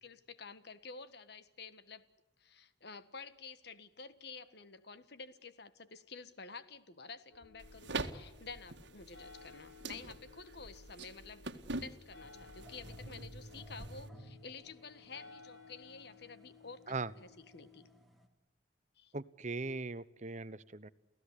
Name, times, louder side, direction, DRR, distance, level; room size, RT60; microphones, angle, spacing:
voice 1, 0.0-2.0 2.4-11.4 11.8-17.9 18.9-19.1, left 4 dB, 60° left, 13 dB, 1.6 m, -51 dB
sound 1, 7.3-17.8, left 5 dB, 75° left, 5.0 m, -59 dB
sound 2, 7.6-14.1, right 3 dB, 70° right, 1.9 m, -45 dB
sound 3, 12.2-18.3, right 1 dB, ahead, 3.0 m, -55 dB
voice 2, 19.1-20.9, right 3 dB, 40° right, 16 dB, 1.0 m, -39 dB
29.5 x 16.5 x 10.0 m, 0.97 s
head